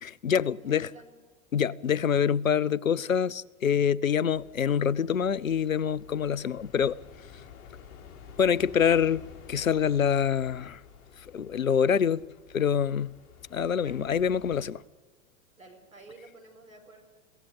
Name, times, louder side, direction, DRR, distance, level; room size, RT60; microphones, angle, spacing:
voice 1, 0.0-0.9 1.5-7.0 8.4-10.8 11.2-12.2 12.5-13.1 13.5-14.8, left 7 dB, 80° left, 0.7 m, -26 dB
voice 2, 0.5-1.1 13.7-14.0 15.6-17.0, right 3 dB, 85° right, 5.1 m, -51 dB
sound 1, 4.3-14.7, left 7 dB, 40° left, 5.2 m, -51 dB
23.5 x 16.5 x 8.7 m
figure-of-eight pair, 95°, 40 cm